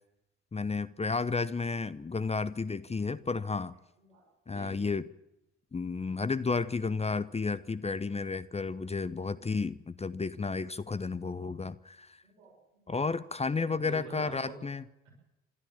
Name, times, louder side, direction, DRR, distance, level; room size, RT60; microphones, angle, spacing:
voice 1, 0.5-3.7 4.5-5.1 5.7-12.2 12.9-14.8, left 4 dB, 15° left, 0.8 m, -32 dB
voice 2, 4.0-4.9 7.8-7.9 9.3-9.4 12.2-13.0 13.4-14.6 15.0-15.1, right 3 dB, 70° right, 6.1 m, -48 dB
28.0 x 13.0 x 7.2 m
figure-of-eight pair, 45°, 36 cm